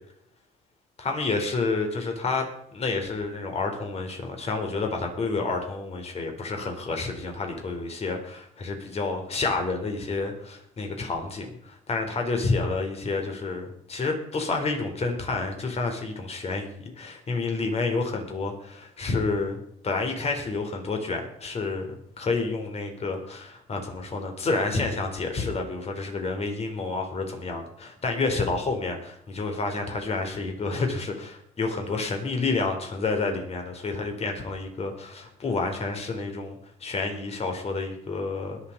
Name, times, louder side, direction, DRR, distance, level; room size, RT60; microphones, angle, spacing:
voice 1, 1.0-2.4 2.7-38.6, left 3 dB, 40° left, 4 dB, 3.9 m, -29 dB
21.0 x 7.4 x 5.3 m, 0.70 s
cardioid pair, 110°, 17 cm